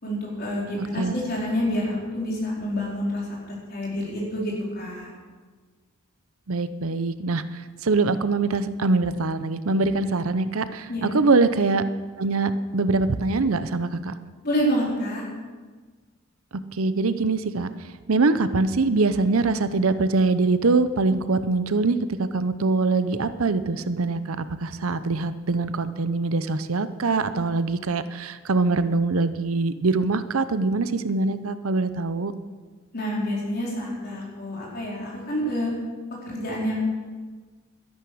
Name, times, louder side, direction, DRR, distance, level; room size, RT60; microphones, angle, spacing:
voice 1, 0.0-5.1 10.9-11.1 14.4-15.2 32.9-35.7 36.2-36.8, equal, 45° left, -4 dB, 4.3 m, -28 dB
voice 2, 0.8-1.1 6.5-11.9 12.2-14.1 16.7-17.7 18.1-32.3, right 3 dB, 85° right, 12 dB, 0.7 m, -23 dB
12.5 x 11.0 x 6.3 m, 1.4 s
head